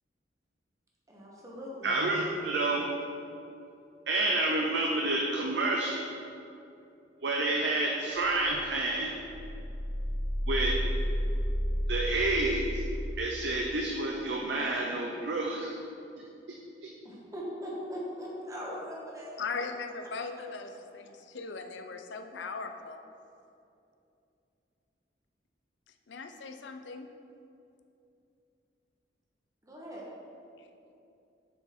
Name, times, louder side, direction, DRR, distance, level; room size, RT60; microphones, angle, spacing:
voice 1, 1.1-1.9 17.0-19.4 29.6-30.1, equal, 20° right, -4 dB, 1.2 m, -40 dB
voice 2, 1.8-2.9 4.1-6.0 7.2-9.1 10.5-10.7 11.9-12.8 13.2-15.7, right 2 dB, 75° right, 0 dB, 0.6 m, -29 dB
sound 1, 8.2-8.9 9.2-13.2, equal, 15° left, 0.4 m, -32 dB
voice 3, 19.4-23.0 26.1-27.1, left 4 dB, 85° left, 6 dB, 0.5 m, -39 dB
6.9 x 4.5 x 4.3 m, 2.7 s
head